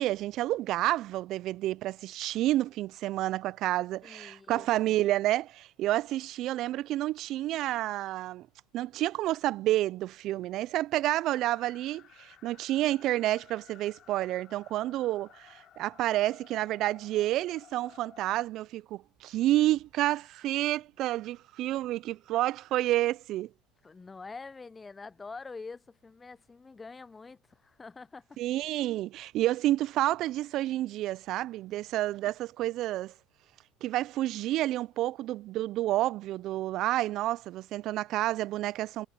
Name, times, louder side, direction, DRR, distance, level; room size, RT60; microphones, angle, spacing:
voice 1, 0.0-8.5 8.7-23.5 28.4-33.1 33.8-39.1, right 15 dB, 60° right, 0.4 m, -29 dB
voice 2, 4.0-5.0 23.8-28.4, left 4 dB, 20° left, 0.7 m, -46 dB
sound 1, 11.2-18.5, left 11 dB, 50° left, 5.5 m, -56 dB
supercardioid pair, 85°, 0 cm